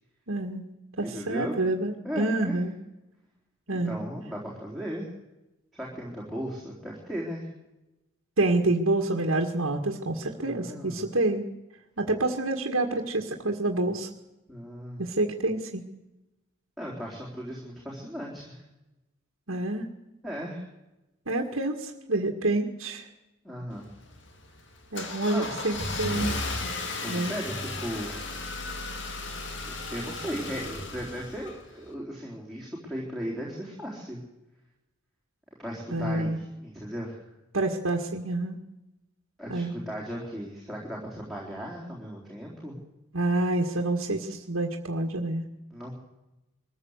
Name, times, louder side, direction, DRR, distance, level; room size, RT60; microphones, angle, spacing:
voice 1, 0.3-0.7 1.0-2.7 3.7-4.0 8.4-11.4 12.0-14.1 15.0-15.8 19.5-19.9 21.3-23.1 24.9-26.3 27.1-27.4 35.9-36.4 37.5-38.6 39.5-39.7 43.1-45.5, right 2 dB, 80° right, 1 dB, 1.9 m, -27 dB
voice 2, 1.0-1.5 2.0-2.6 3.7-5.1 5.7-7.5 10.4-11.1 14.5-15.0 16.8-18.6 20.2-20.6 23.4-23.9 25.3-25.5 27.0-28.1 29.7-34.2 35.6-37.2 39.4-42.8 45.7-45.9, equal, ahead, -4 dB, 3.9 m, -36 dB
Car / Engine starting, 23.7-31.9, left 2 dB, 60° left, 2.5 m, -35 dB
23.0 x 14.5 x 8.2 m, 0.97 s
head